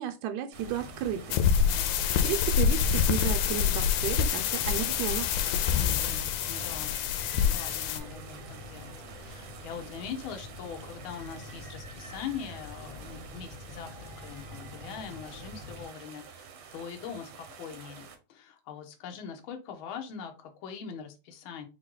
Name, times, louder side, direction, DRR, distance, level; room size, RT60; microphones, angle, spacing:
voice 1, 0.0-1.4 2.1-5.3, right 9 dB, 80° right, 1.9 m, -33 dB
sound 1, 0.5-15.9, left 2 dB, 35° right, 0.9 m, -46 dB
sound 2, 0.5-18.2, right 6 dB, 65° right, 1.4 m, -49 dB
sound 3, 1.3-8.0, left 8 dB, 90° left, 2.0 m, -26 dB
voice 2, 1.6-2.0 5.8-8.9 9.2-21.7, left 7 dB, 65° left, 1.3 m, -42 dB
6.2 x 2.3 x 3.8 m
omnidirectional pair, 3.4 m